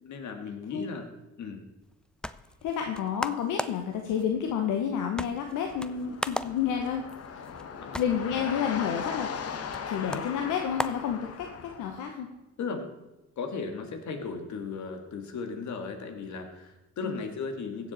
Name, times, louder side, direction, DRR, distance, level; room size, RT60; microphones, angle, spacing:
voice 1, 0.0-1.1 1.4-1.6 7.9-8.0 12.6-12.9 13.4-17.9, left 4 dB, 70° left, 5 dB, 1.9 m, -36 dB
sound 1, 1.8-11.8, left 1 dB, 5° left, 0.4 m, -40 dB
voice 2, 2.6-7.0 7.4-7.5 7.9-9.3 9.9-12.3 17.0-17.2, left 8 dB, 85° left, 3 dB, 1.1 m, -30 dB
sound 2, 5.7-12.0, left 6 dB, 55° left, 1.1 m, -38 dB
15.5 x 7.3 x 4.1 m, 1.0 s
cardioid pair, 90°, 30 cm